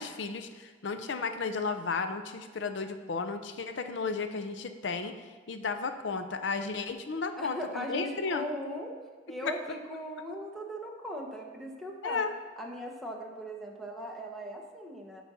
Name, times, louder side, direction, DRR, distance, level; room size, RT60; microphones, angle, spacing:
voice 1, 0.0-5.1 5.5-8.5 9.4-9.5 12.0-12.3, left 4 dB, 70° left, 8 dB, 0.6 m, -33 dB
voice 2, 7.4-9.0 9.3-12.3 12.6-15.2, equal, ahead, -1 dB, 0.9 m, -39 dB
9.2 x 4.1 x 6.1 m, 1.5 s
head